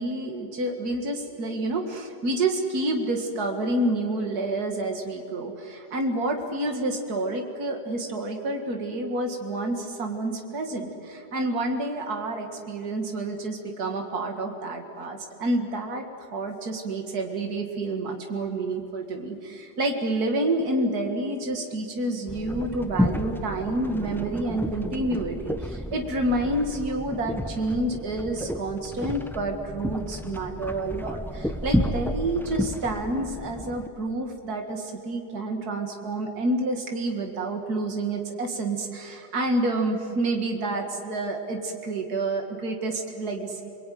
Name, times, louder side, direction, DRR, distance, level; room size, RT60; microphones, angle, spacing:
voice 1, 0.0-16.1 16.3-43.7, right 2 dB, 65° right, 3 dB, 2.6 m, -29 dB
sound 1, 22.3-33.9, equal, ahead, 0.6 m, -31 dB
28.5 x 21.5 x 9.4 m, 2.6 s
omnidirectional pair, 1.8 m